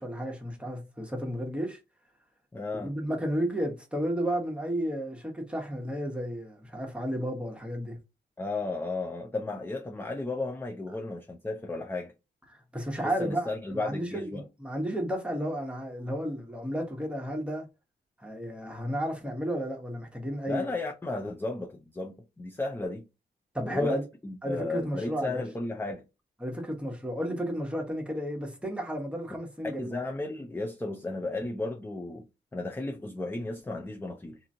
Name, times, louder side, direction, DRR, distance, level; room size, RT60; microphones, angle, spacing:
voice 1, 0.0-1.8 2.7-8.0 12.7-17.7 18.2-20.7 23.5-24.0 24.4-25.4 26.4-30.0, equal, 5° right, 1.0 m, -32 dB
voice 2, 2.5-2.9 8.4-12.1 12.9-14.4 20.5-23.1 23.7-24.0 24.2-26.0 29.8-32.3 32.5-34.4, left 2 dB, 10° left, 0.4 m, -34 dB
2.9 x 2.6 x 2.6 m
cardioid pair, 90°, 18 cm